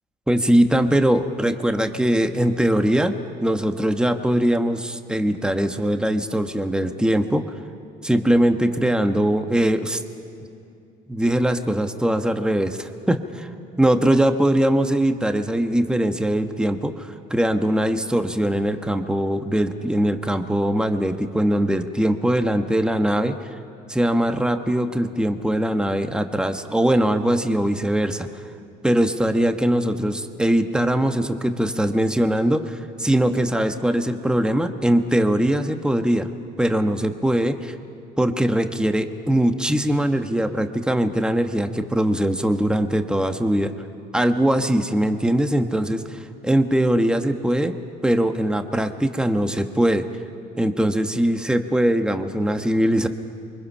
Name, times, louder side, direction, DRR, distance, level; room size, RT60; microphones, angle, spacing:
voice 1, 0.3-3.2 3.4-7.4 8.0-10.0 11.1-13.5 13.8-23.5 23.9-28.3 28.8-36.3 36.6-37.7 38.2-43.7 44.1-47.7 48.0-50.1 50.6-53.1, right 1 dB, 5° right, 7 dB, 1.3 m, -21 dB
28.5 x 23.5 x 5.7 m, 2.7 s
supercardioid pair, 90°, 20 cm